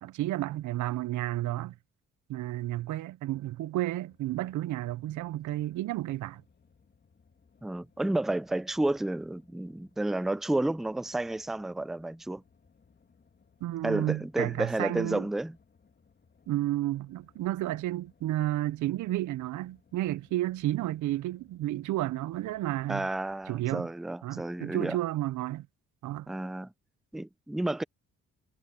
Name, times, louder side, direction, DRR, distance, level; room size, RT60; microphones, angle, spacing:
voice 1, 0.0-1.7 2.3-6.4 13.6-15.3 16.5-23.1 23.5-23.9 24.2-25.7 26.0-26.3, right 15 dB, 75° right, 0.7 m, -32 dB
sound 1, 4.1-23.5, left 5 dB, 35° left, 2.6 m, -65 dB
voice 2, 7.6-12.4 13.8-15.6 22.9-25.0 26.3-26.7 27.1-27.8, right 2 dB, ahead, 0.4 m, -31 dB
cardioid pair, 90°, 30 cm